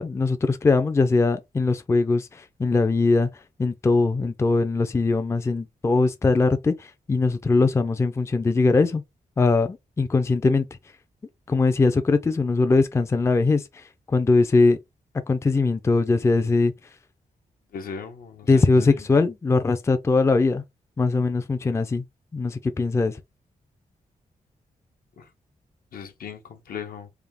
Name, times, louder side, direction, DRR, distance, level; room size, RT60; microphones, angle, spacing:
voice 1, 0.0-3.3 3.6-9.0 9.4-10.7 11.5-14.8 15.3-16.7 18.5-20.6 21.0-22.0 22.3-23.2, left 3 dB, 20° left, 0.4 m, -21 dB
voice 2, 17.7-19.0 25.2-25.3 25.9-27.1, left 6 dB, 80° left, 0.8 m, -38 dB
3.4 x 2.3 x 3.5 m
wide cardioid pair, 135°, 15 cm